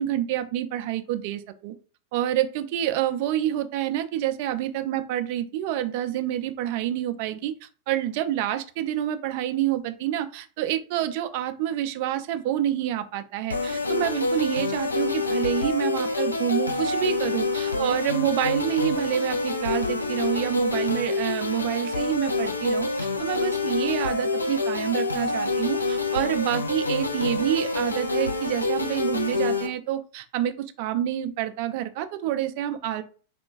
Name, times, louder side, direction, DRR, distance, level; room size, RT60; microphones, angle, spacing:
voice 1, 0.0-1.7 2.1-33.0, right 12 dB, 50° right, 9 dB, 0.3 m, -28 dB
sound 1, 13.5-29.7, left 3 dB, 80° left, 0.3 m, -27 dB
4.1 x 2.2 x 2.3 m, 0.38 s
figure-of-eight pair, 90°, 0 cm